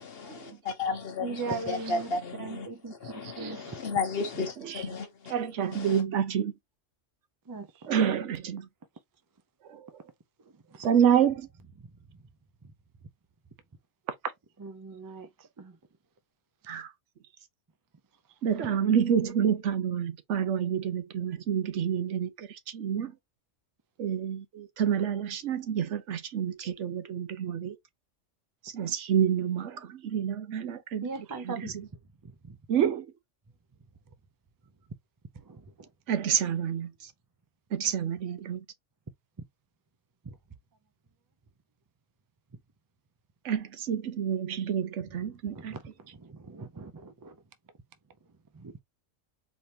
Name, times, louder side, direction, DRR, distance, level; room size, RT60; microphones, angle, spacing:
voice 1, 0.0-5.3 5.7-6.0, left 4 dB, 55° left, 1.1 m, -34 dB
voice 2, 1.2-2.1 2.4-3.8 7.5-7.7 14.6-15.3 15.6-15.7 31.0-31.8 32.5-32.6 35.5-35.6 45.5-45.8 46.2-47.3 48.5-48.7, right 4 dB, 35° right, 0.3 m, -38 dB
voice 3, 5.3-6.5 7.9-8.7 9.7-9.9 10.8-11.5 16.7-16.9 18.4-23.1 24.0-27.8 28.6-31.1 31.4-31.9 32.7-33.1 36.1-37.1 37.7-38.6 43.4-45.7, right 8 dB, 70° right, 1.1 m, -28 dB
4.3 x 3.2 x 2.7 m
omnidirectional pair, 1.3 m